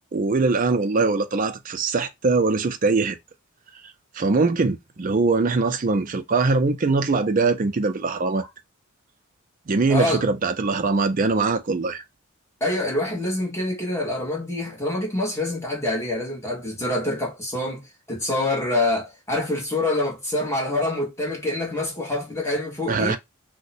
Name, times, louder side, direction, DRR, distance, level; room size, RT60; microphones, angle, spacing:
voice 1, 0.1-3.2 4.1-8.4 9.7-12.0 22.9-23.2, right 3 dB, 40° right, 0.4 m, -22 dB
voice 2, 9.9-10.2 12.6-17.8 18.1-23.2, left 1 dB, 15° left, 1.2 m, -26 dB
2.8 x 2.2 x 4.1 m
head